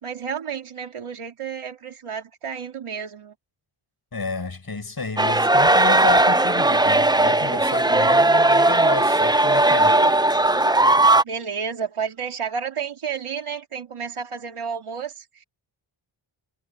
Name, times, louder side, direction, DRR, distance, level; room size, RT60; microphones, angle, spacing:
voice 1, 0.0-3.3 11.2-15.4, right 6 dB, 90° right, 3.6 m, -31 dB
voice 2, 4.1-10.0, left 3 dB, 45° left, 7.6 m, -31 dB
sound 1, 5.2-11.2, right 2 dB, 10° right, 0.6 m, -17 dB
cardioid pair, 60°, 49 cm